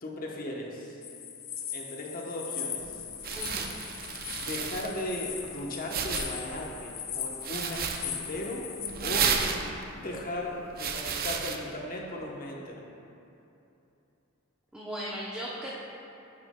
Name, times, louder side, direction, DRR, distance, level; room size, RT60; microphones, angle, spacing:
voice 1, 0.0-1.0 1.7-2.8 4.4-8.7 9.0-9.3 9.9-12.9, left 1 dB, 45° left, -1 dB, 0.9 m, -37 dB
sound 1, 1.0-8.9, left 8 dB, 85° left, 0.7 m, -39 dB
sound 2, 2.8-11.6, right 6 dB, 50° right, 0.5 m, -34 dB
voice 2, 3.3-3.8 9.3-9.8 14.7-15.7, equal, 5° right, -7 dB, 0.7 m, -38 dB
9.6 x 7.8 x 2.2 m, 2.8 s
head